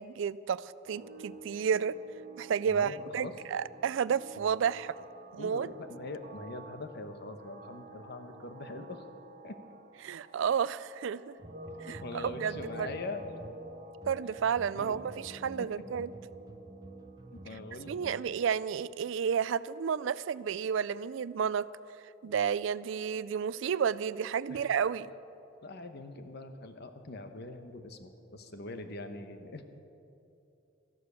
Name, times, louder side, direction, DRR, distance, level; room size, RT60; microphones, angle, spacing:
voice 1, 0.0-2.0 2.4-4.9 5.3-5.7 10.0-11.3 11.8-12.9 14.1-16.1 17.9-21.7 22.2-25.1, right 7 dB, 70° right, 18 dB, 0.4 m, -31 dB
sound 1, 0.8-18.4, right 2 dB, 40° right, 1.1 m, -50 dB
voice 2, 2.6-3.3 4.4-4.5 5.3-9.0 9.4-9.5 11.8-13.2 14.8-15.0 15.6-15.7 17.3-18.2 24.5-24.7 25.6-29.6, left 2 dB, 55° left, 7 dB, 1.1 m, -43 dB
sound 2, 11.4-18.2, right 1 dB, 20° right, 0.5 m, -49 dB
14.0 x 12.0 x 6.9 m, 2.9 s
head